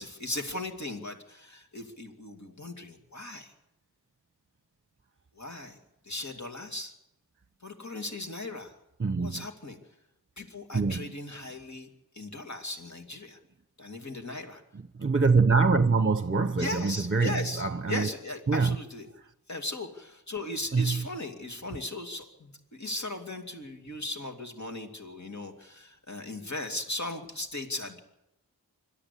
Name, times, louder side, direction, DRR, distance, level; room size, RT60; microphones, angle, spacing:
voice 1, 0.0-3.5 5.3-5.8 6.0-6.9 7.6-8.8 9.2-9.8 10.4-11.9 12.1-13.4 13.8-14.6 16.6-19.1 19.5-28.0, left 2 dB, 50° left, 2.7 m, -37 dB
voice 2, 9.0-9.4 10.7-11.1 15.0-17.3 17.6-18.1 18.5-18.7 20.7-21.0, right 4 dB, 35° right, 0.9 m, -24 dB
25.5 x 13.0 x 8.4 m
wide cardioid pair, 55°, 37 cm